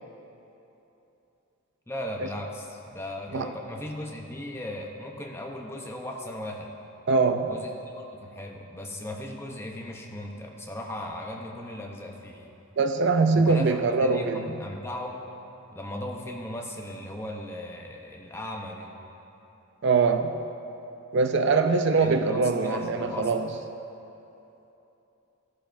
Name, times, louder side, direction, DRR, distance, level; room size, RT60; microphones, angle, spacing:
voice 1, 1.9-6.7 7.5-12.5 13.3-15.3 15.7-18.9 21.9-23.3, left 1 dB, 10° left, 0 dB, 0.7 m, -37 dB
voice 2, 7.1-7.5 12.8-14.6 19.8-20.4 21.1-23.5, right 4 dB, 50° right, 7 dB, 0.4 m, -23 dB
16.0 x 11.0 x 2.6 m, 3.0 s
head